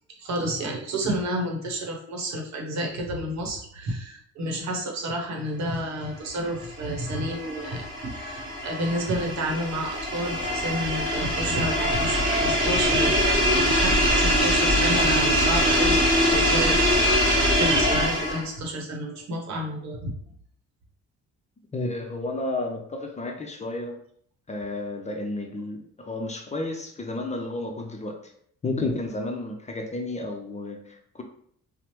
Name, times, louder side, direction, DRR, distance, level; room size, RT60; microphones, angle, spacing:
voice 1, 0.2-20.1, right 1 dB, 65° right, 1 dB, 0.8 m, -31 dB
sound 1, 6.6-18.5, equal, 15° right, 1.1 m, -23 dB
voice 2, 21.7-24.0 24.5-28.3 28.6-31.2, left 2 dB, 25° left, 2 dB, 0.4 m, -32 dB
3.0 x 2.0 x 2.9 m, 0.62 s
cardioid pair, 90°, 30 cm